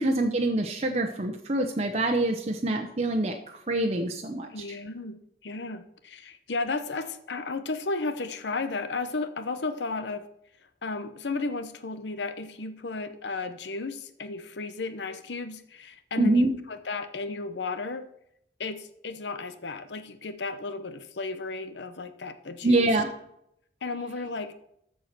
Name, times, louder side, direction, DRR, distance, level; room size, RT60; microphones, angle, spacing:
voice 1, 0.0-3.4 3.7-4.5 16.2-16.5 22.6-23.1, right 2 dB, 35° right, 2 dB, 1.0 m, -25 dB
voice 2, 4.5-10.2 10.8-18.0 18.6-22.9 23.8-24.5, left 3 dB, 70° left, 10 dB, 0.8 m, -34 dB
14.0 x 4.8 x 6.0 m, 0.74 s
head